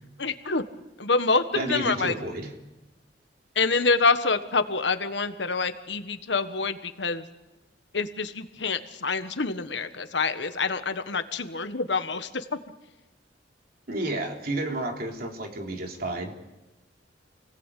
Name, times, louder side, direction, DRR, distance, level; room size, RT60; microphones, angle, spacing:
voice 1, 0.2-0.6 1.0-2.1 3.5-7.3 7.9-12.4, left 4 dB, 70° left, 10 dB, 1.5 m, -26 dB
voice 2, 1.6-2.5 13.9-16.3, right 1 dB, 55° right, 2 dB, 3.3 m, -31 dB
29.0 x 18.5 x 8.4 m, 1.1 s
head